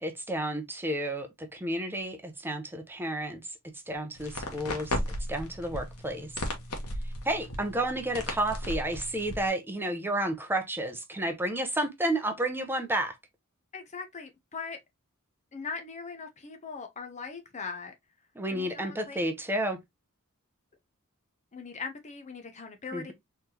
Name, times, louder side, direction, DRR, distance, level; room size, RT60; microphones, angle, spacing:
voice 1, 0.0-3.4 3.9-5.0 5.3-6.3 7.2-13.1 18.4-19.8 22.9-23.1, right 1 dB, 10° right, 0.7 m, -31 dB
sound 1, 4.2-9.5, left 1 dB, 80° left, 1.2 m, -36 dB
voice 2, 13.7-14.8 15.5-17.9 18.5-19.2 21.5-23.1, left 5 dB, 30° left, 0.7 m, -40 dB
4.1 x 3.3 x 2.8 m
head